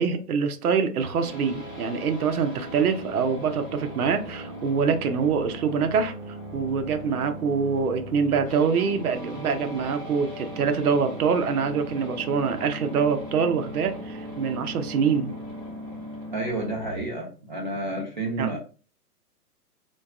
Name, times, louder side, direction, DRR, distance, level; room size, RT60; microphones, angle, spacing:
voice 1, 0.0-6.1 6.5-15.3 18.4-18.5, right 6 dB, 65° right, 0.7 m, -25 dB
sound 1, 1.0-17.0, equal, ahead, 1.4 m, -38 dB
voice 2, 16.3-18.6, right 2 dB, 30° right, 0.4 m, -30 dB
3.8 x 2.2 x 2.3 m
hypercardioid pair, 150°, 48 cm